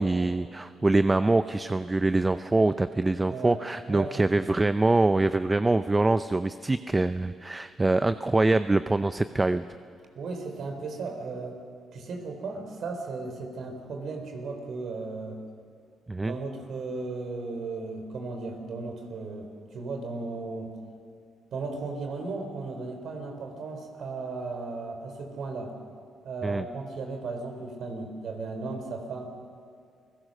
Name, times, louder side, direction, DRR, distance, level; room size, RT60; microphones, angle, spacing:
voice 1, 0.0-9.6 16.1-16.3 26.4-26.6, right 2 dB, 20° right, 12 dB, 0.6 m, -24 dB
voice 2, 3.9-4.6 10.2-11.6 11.9-15.4 16.2-20.7 21.5-25.7 26.2-29.2, right 3 dB, 70° right, 4 dB, 4.1 m, -35 dB
28.5 x 18.0 x 6.6 m, 2.2 s
supercardioid pair, 70°, 0 cm